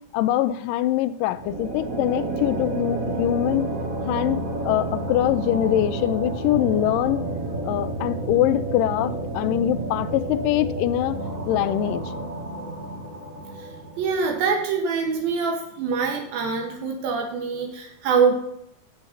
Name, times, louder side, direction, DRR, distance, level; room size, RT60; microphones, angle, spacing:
voice 1, 0.1-3.7 4.1-7.3 7.7-12.0, left 13 dB, 80° left, 14 dB, 2.0 m, -23 dB
sound 1, 1.3-14.5, right 2 dB, 30° right, 1.7 m, -30 dB
voice 2, 14.0-18.3, right 5 dB, 80° right, 1 dB, 3.0 m, -24 dB
15.5 x 7.0 x 2.8 m, 0.79 s
omnidirectional pair, 4.2 m